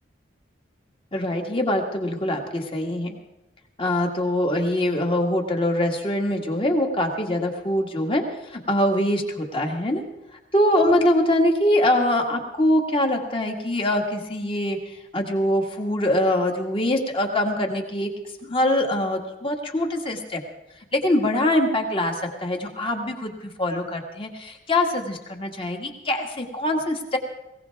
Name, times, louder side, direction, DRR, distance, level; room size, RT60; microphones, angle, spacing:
voice 1, 1.1-3.2 3.8-10.0 10.5-14.8 15.1-18.1 18.5-20.4 20.9-27.2, left 1 dB, 30° left, 3 dB, 1.9 m, -23 dB
20.5 x 18.0 x 3.6 m, 0.97 s
head